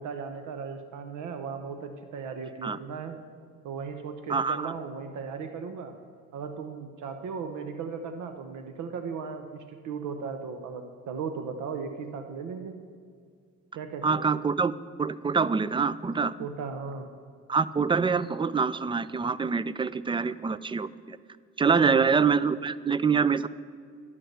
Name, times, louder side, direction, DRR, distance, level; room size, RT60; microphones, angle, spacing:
voice 1, 0.0-3.2 3.6-5.9 6.3-12.8 13.7-14.2 16.4-17.1 21.7-22.0, right 5 dB, 75° right, 7 dB, 0.9 m, -37 dB
voice 2, 4.3-4.7 14.0-14.7 15.0-16.5 17.5-21.2 21.6-23.5, right 5 dB, 15° right, 17 dB, 0.3 m, -25 dB
11.0 x 5.7 x 7.8 m, 2.1 s
cardioid pair, 90°, 30 cm